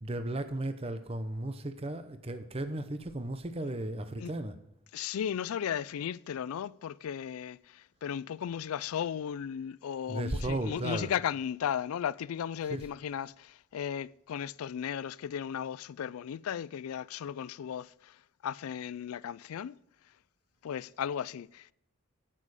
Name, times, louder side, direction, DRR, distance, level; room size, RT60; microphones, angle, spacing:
voice 1, 0.0-4.6 10.1-11.1 12.6-12.8, right 1 dB, 30° right, 0.7 m, -35 dB
voice 2, 4.9-19.8 20.6-21.7, left 8 dB, 90° left, 0.3 m, -36 dB
8.6 x 8.6 x 4.9 m
head